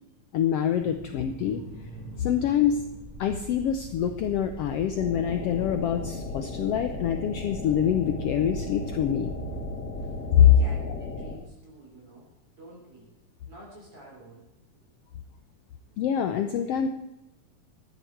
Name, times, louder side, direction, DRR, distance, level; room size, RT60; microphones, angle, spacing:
voice 1, 0.3-1.6 2.2-2.8 3.2-9.3 10.3-10.4 16.0-16.9, left 9 dB, 80° left, 7 dB, 1.3 m, -25 dB
sound 1, 0.7-10.7, right 2 dB, 5° left, 2.6 m, -42 dB
sound 2, 5.0-11.4, left 3 dB, 55° left, 3.2 m, -37 dB
voice 2, 10.4-13.1 13.5-14.5, right 2 dB, 45° right, -4 dB, 4.4 m, -48 dB
15.5 x 12.0 x 4.5 m, 0.97 s
omnidirectional pair, 3.6 m